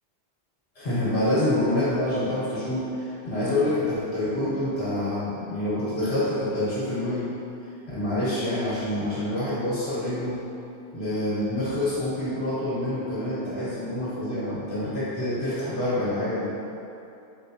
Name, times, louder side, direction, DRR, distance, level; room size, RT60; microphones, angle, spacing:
voice 1, 0.8-7.3 7.9-10.4 10.9-16.5, left 1 dB, 65° left, -10 dB, 1.4 m, -27 dB
4.2 x 3.5 x 2.6 m, 2.7 s
omnidirectional pair, 1.2 m